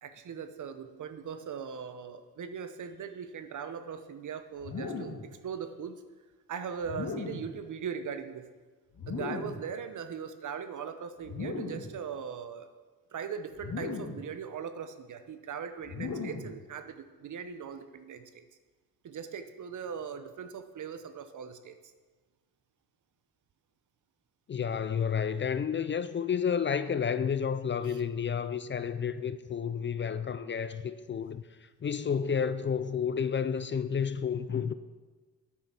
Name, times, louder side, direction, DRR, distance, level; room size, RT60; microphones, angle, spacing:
voice 1, 0.0-6.0 6.5-8.5 9.1-12.7 13.1-18.4 19.0-21.8 27.8-28.0, right 7 dB, 60° right, 0.9 m, -40 dB
sound 1, 4.6-5.3 6.8-7.6 8.9-9.7 11.2-11.9 13.6-14.3 15.8-16.6, left 4 dB, 60° left, 1.8 m, -37 dB
voice 2, 24.5-31.4 31.8-34.7, left 7 dB, 35° left, 0.4 m, -31 dB
9.7 x 6.6 x 5.9 m
cardioid pair, 95°, 35 cm